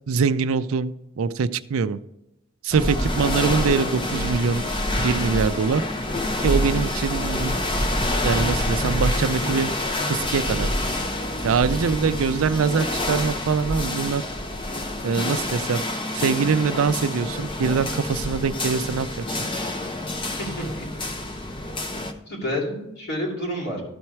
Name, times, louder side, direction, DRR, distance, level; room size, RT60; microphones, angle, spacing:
voice 1, 0.1-2.0 2.6-4.6 5.0-5.8 6.4-7.6 8.2-9.7 10.1-10.7 11.4-14.2 15.0-15.8 16.1-19.2, right 5 dB, 80° right, 13 dB, 0.4 m, -23 dB
sound 1, 2.7-22.1, left 1 dB, 25° left, 0.7 m, -27 dB
voice 2, 20.3-20.9 22.3-23.8, equal, 50° left, -1 dB, 3.1 m, -29 dB
13.0 x 4.3 x 4.6 m, 0.89 s
head